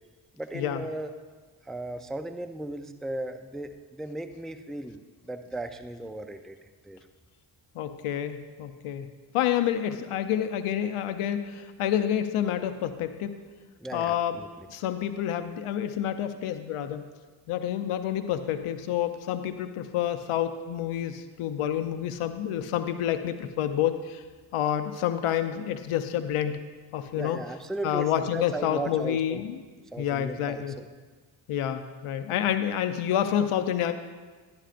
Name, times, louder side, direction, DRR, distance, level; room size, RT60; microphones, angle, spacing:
voice 1, 0.4-1.1 1.6-6.6 6.8-7.0 13.8-14.7 27.1-29.4 29.9-30.9, right 2 dB, ahead, 8 dB, 0.4 m, -36 dB
voice 2, 7.7-9.1 9.3-13.3 13.9-14.4 14.7-17.1 17.5-24.2 24.5-26.6 26.9-27.4 27.8-29.6 30.0-30.8 31.5-33.9, left 10 dB, 85° left, 9 dB, 0.7 m, -28 dB
11.5 x 11.5 x 2.5 m, 1.4 s
cardioid pair, 70°, 49 cm